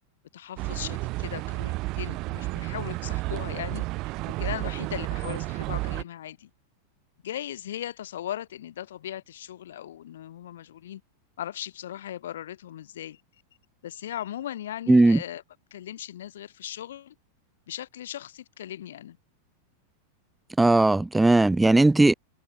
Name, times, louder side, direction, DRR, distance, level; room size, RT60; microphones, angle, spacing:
voice 1, 0.3-3.8 4.3-6.5 7.2-11.0 11.4-13.2 13.8-15.4 15.7-17.1 17.7-19.2, left 11 dB, 60° left, 3.2 m, -38 dB
sound 1, 0.6-6.0, right 21 dB, 40° right, 0.8 m, -31 dB
voice 2, 14.9-15.2 20.6-22.1, right 2 dB, 5° right, 0.7 m, -18 dB
figure-of-eight pair, 90°, 0 cm